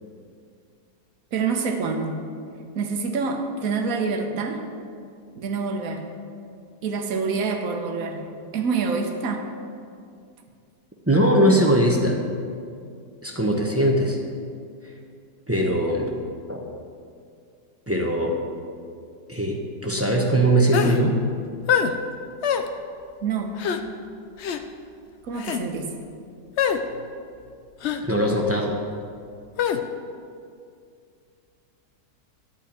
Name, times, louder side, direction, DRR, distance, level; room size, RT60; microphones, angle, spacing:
voice 1, 1.3-2.3 2.7-4.7 5.3-6.1 6.8-8.3 8.5-9.5 23.2-23.6 25.2-25.9, right 4 dB, 55° right, 3 dB, 1.4 m, -26 dB
voice 2, 11.1-12.2 13.2-14.2 15.5-16.1 16.5-16.7 17.9-18.4 19.3-21.2 28.0-28.7, right 1 dB, 10° right, 0 dB, 0.8 m, -21 dB
sound 1, 20.7-21.0 21.7-21.9 22.4-22.7 23.6-23.8 24.4-24.6 25.3-25.6 26.6-26.8 27.8-28.0 29.6-29.8, left 8 dB, 65° left, 0.6 m, -23 dB
11.5 x 5.6 x 8.8 m, 2.3 s
omnidirectional pair, 1.9 m